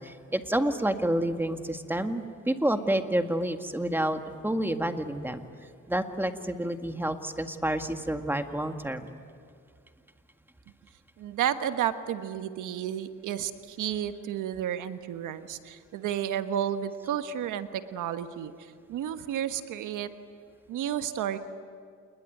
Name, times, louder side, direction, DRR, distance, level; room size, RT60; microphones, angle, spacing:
voice 1, 0.0-5.4 5.9-9.1, right 1 dB, 5° right, 6 dB, 1.8 m, -29 dB
voice 2, 11.2-20.1 20.7-21.4, right 10 dB, 85° right, 9 dB, 1.4 m, -32 dB
28.0 x 21.0 x 9.3 m, 2.1 s
cardioid pair, 90°, 30 cm